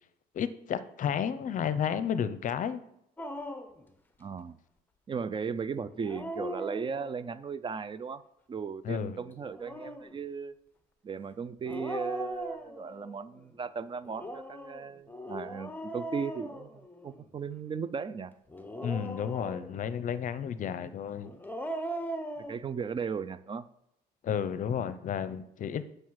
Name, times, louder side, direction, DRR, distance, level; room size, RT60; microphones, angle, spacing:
voice 1, 0.3-2.8 8.8-9.2 18.8-21.3 24.2-25.8, left 8 dB, 50° left, 14 dB, 0.7 m, -32 dB
Dog, 3.2-3.8 5.9-7.3 9.4-10.1 11.6-13.1 14.0-17.2 18.5-19.9 21.2-22.6, equal, 10° left, 1.0 m, -39 dB
voice 2, 4.2-4.6 5.1-8.2 8.5-10.5 11.0-18.3 22.5-23.7, right 6 dB, 30° right, 15 dB, 0.5 m, -36 dB
9.0 x 6.5 x 4.7 m, 0.79 s
cardioid pair, 110°, 17 cm